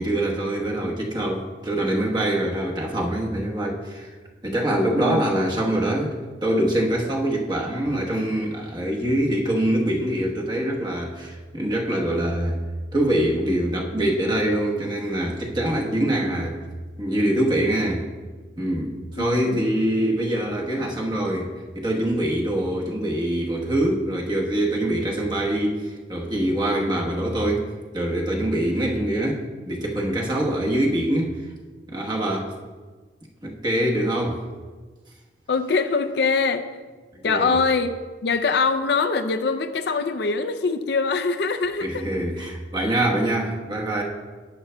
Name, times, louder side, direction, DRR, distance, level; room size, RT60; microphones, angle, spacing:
voice 1, 0.0-4.1 4.4-12.6 12.9-16.6 17.0-18.1 18.6-27.7 27.9-31.5 31.9-32.5 33.4-34.4 37.3-37.6 41.8-44.0, right 1 dB, 25° right, -2 dB, 1.1 m, -24 dB
voice 2, 19.2-19.6 35.5-36.7 37.2-42.1, left 4 dB, 65° left, 9 dB, 0.5 m, -23 dB
11.5 x 9.2 x 2.2 m, 1.4 s
head